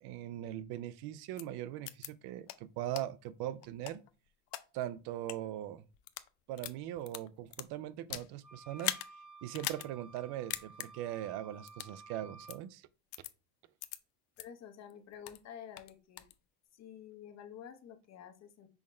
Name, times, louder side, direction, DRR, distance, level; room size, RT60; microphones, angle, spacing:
voice 1, 0.0-4.0 4.7-5.8 6.5-9.0 9.4-12.9, right 12 dB, 60° right, 0.5 m, -40 dB
sound 1, 1.4-1.5 1.9-2.1 2.5-2.6 3.0-3.1 3.6-4.6 5.2-5.4 5.9-6.3 6.6-8.3 8.8-9.1 9.5-9.9 10.2-10.3 10.5-10.9 11.7-11.9 12.5-12.6 13.1-13.3 13.8-14.0 14.4-14.5 14.9-15.4 15.8-16.3, left 16 dB, 80° left, 0.6 m, -40 dB
sound 2, 8.4-12.6, right 3 dB, 10° right, 1.0 m, -54 dB
voice 2, 14.4-16.2 16.7-18.7, left 8 dB, 35° left, 0.8 m, -50 dB
5.6 x 2.1 x 4.2 m
supercardioid pair, 110°, 44 cm